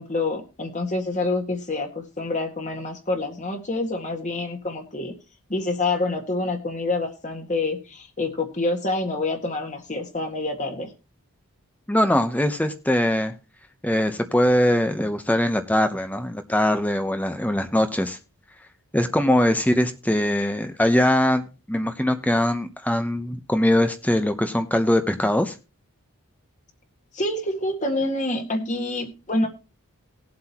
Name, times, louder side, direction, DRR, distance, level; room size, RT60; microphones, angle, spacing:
voice 1, 0.0-5.1 5.5-10.9 27.1-29.5, left 2 dB, 35° left, 3 dB, 1.8 m, -27 dB
voice 2, 11.9-13.3 13.8-18.2 18.9-25.5, left 1 dB, 5° left, 8 dB, 0.8 m, -22 dB
19.5 x 7.7 x 3.0 m, 0.31 s
head